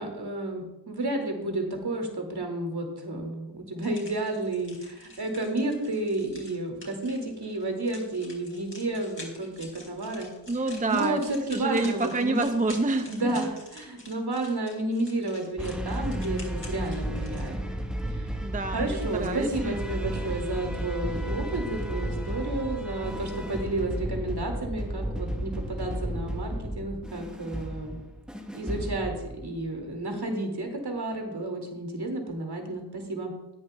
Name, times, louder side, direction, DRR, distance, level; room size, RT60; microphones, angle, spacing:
voice 1, 0.0-10.3 10.9-12.4 13.1-17.5 18.1-18.3 18.7-28.0 28.5-33.3, right 2 dB, 60° right, 2 dB, 2.3 m, -31 dB
sound 1, 3.8-17.5, left 2 dB, 30° left, 4.1 m, -48 dB
voice 2, 10.5-11.2 11.5-13.5 18.4-19.8 20.2-20.3, right 2 dB, 20° right, 7 dB, 0.6 m, -28 dB
sound 2, 15.6-29.6, right 1 dB, ahead, 1.2 m, -33 dB
17.5 x 10.0 x 2.3 m, 0.97 s
wide cardioid pair, 75°, 43 cm